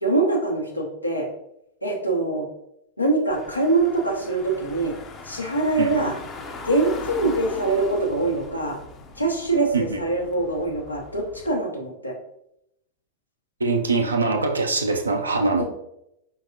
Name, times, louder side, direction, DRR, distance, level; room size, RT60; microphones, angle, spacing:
voice 1, 0.0-1.3 1.8-2.5 3.0-4.9 5.3-6.1 6.6-8.8 9.2-12.1 15.6-15.7, right 2 dB, 85° left, 0 dB, 0.9 m, -23 dB
Car / Engine, 3.3-11.5, left 3 dB, 30° left, 0.6 m, -40 dB
voice 2, 5.8-6.1 9.7-10.0 13.6-15.6, right 3 dB, 75° right, 4 dB, 0.4 m, -23 dB
4.6 x 3.8 x 2.7 m, 0.80 s
figure-of-eight pair, 90°, 0 cm